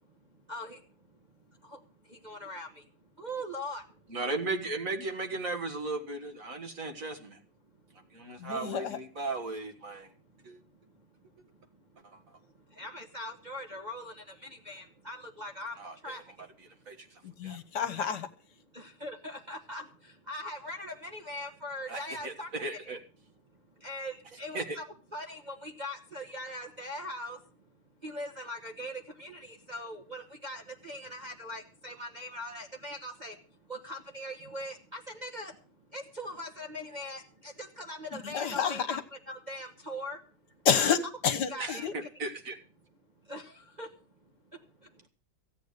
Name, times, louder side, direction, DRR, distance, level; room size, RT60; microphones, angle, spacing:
voice 1, 2.2-2.7 3.2-3.8 12.8-14.1 14.4-15.8 16.0-16.2 18.7-19.8 20.3-22.8 23.8-24.8 25.1-27.4 28.0-33.3 33.7-35.5 35.9-39.0 39.3-40.2 41.5-41.9 43.3-43.4 43.8-43.9, left 1 dB, 25° right, 2 dB, 1.2 m, -40 dB
voice 2, 4.1-7.4 8.1-10.1 10.4-10.6 12.0-12.2 15.8-16.2 16.9-17.6 21.9-23.0 24.5-24.8 41.6-42.6, right 3 dB, 45° right, 4 dB, 1.9 m, -36 dB
voice 3, 8.4-9.0 17.2-18.3 38.2-39.0 40.6-41.9, left 7 dB, 65° left, 11 dB, 1.6 m, -29 dB
15.5 x 8.4 x 6.5 m, 0.39 s
omnidirectional pair, 2.1 m